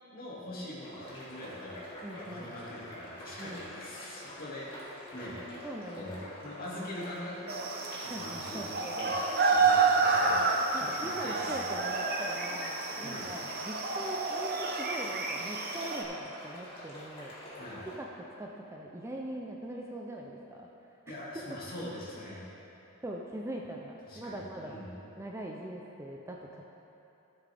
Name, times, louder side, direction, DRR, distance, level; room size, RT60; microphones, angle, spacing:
voice 1, 0.1-1.8 2.2-5.4 5.9-7.6 8.0-8.5 9.0-9.1 9.5-10.4 10.7-11.6 13.0-13.3 17.6-17.8 21.1-22.4 24.0-24.9, left 1 dB, 40° left, -6 dB, 2.2 m, -43 dB
sound 1, 0.8-17.9, equal, 25° left, 2.1 m, -46 dB
voice 2, 2.0-2.6 3.4-3.7 5.6-6.0 8.1-9.0 9.3-9.5 10.7-17.3 18.0-20.7 21.1-21.2 23.0-24.8 25.2-26.6, right 1 dB, 10° right, -1 dB, 0.5 m, -42 dB
sound 2, 7.5-16.0, right 4 dB, 45° right, 0.8 m, -29 dB
14.0 x 7.5 x 3.5 m, 3.0 s
head